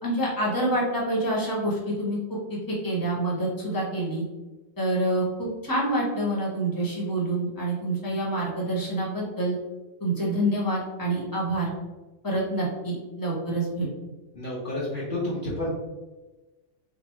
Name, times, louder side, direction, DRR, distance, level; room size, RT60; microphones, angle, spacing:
voice 1, 0.0-2.2 2.5-4.2 4.8-9.6 10.0-11.7 12.2-13.9, right 1 dB, 15° left, -4 dB, 0.7 m, -27 dB
voice 2, 14.3-15.7, left 1 dB, 70° left, -7 dB, 0.5 m, -30 dB
4.1 x 2.0 x 4.3 m, 1.1 s
omnidirectional pair, 2.1 m